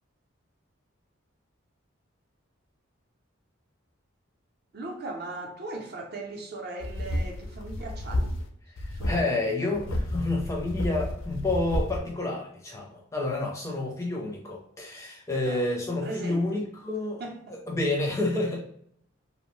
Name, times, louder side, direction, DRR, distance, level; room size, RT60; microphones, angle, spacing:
voice 1, 4.7-8.4 8.9-9.1 15.5-15.7 16.0-16.6 17.2-17.6, right 2 dB, 50° right, 0.5 m, -38 dB
sound 1, 6.8-8.5 8.8-9.2 9.7-12.0, left 1 dB, 75° left, 0.4 m, -31 dB
voice 2, 8.8-17.2 17.5-18.6, left 2 dB, 15° left, 0.4 m, -29 dB
2.6 x 2.1 x 3.0 m
head